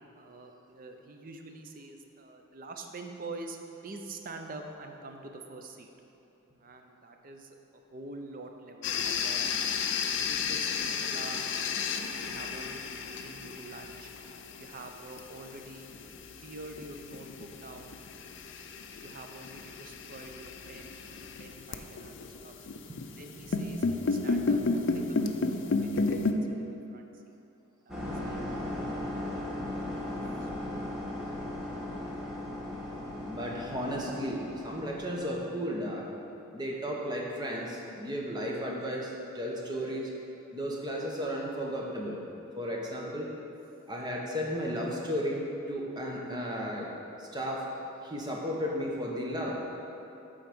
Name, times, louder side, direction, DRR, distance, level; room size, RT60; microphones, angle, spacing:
voice 1, 0.1-3.6 3.8-5.9 6.6-7.6 7.9-9.6 10.2-11.8 12.2-14.1 14.5-15.9 16.4-18.0 19.0-22.5 23.0-23.8 24.1-24.6 24.9-27.2 27.9-28.4 28.7-29.6 30.2-30.5 43.0-43.1, right 2 dB, 40° right, 4 dB, 0.6 m, -46 dB
sound 1, 8.8-26.3, left 4 dB, 60° left, 0.4 m, -33 dB
sound 2, 27.9-35.5, left 1 dB, ahead, 1.2 m, -37 dB
voice 2, 33.3-36.0 36.5-40.1 40.5-42.2 42.5-43.3 43.9-46.9 47.2-47.6 48.0-49.6, equal, 20° right, -2 dB, 0.9 m, -34 dB
8.2 x 3.9 x 6.1 m, 2.8 s
head